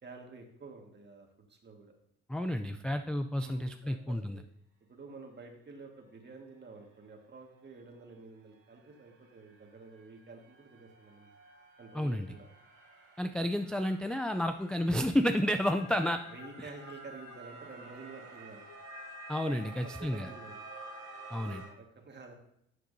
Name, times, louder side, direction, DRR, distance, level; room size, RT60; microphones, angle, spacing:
voice 1, 0.0-1.9 3.3-4.4 4.9-11.3 11.8-12.5 15.6-15.7 16.3-18.6 19.8-20.6 21.6-22.3, right 3 dB, 35° right, 2 dB, 1.7 m, -50 dB
voice 2, 2.3-4.4 11.9-12.3 13.2-16.2 19.3-20.3 21.3-21.6, equal, 5° left, 7 dB, 0.3 m, -31 dB
sound 1, 7.1-7.2 7.6-21.7, right 4 dB, 80° right, 2.5 m, -52 dB
sound 2, 15.7-21.6, left 8 dB, 65° left, 0.7 m, -53 dB
11.5 x 6.5 x 2.7 m, 0.74 s
cardioid pair, 90°, 30 cm